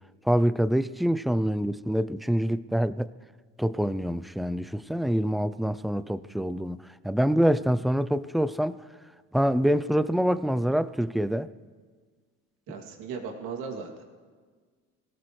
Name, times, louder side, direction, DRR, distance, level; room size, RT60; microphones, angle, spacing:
voice 1, 0.3-3.1 3.6-8.8 9.3-11.5, equal, ahead, 13 dB, 0.4 m, -25 dB
voice 2, 12.7-14.1, right 5 dB, 85° right, 2 dB, 2.7 m, -37 dB
25.5 x 17.5 x 3.2 m, 1.5 s
cardioid pair, 105°, 33 cm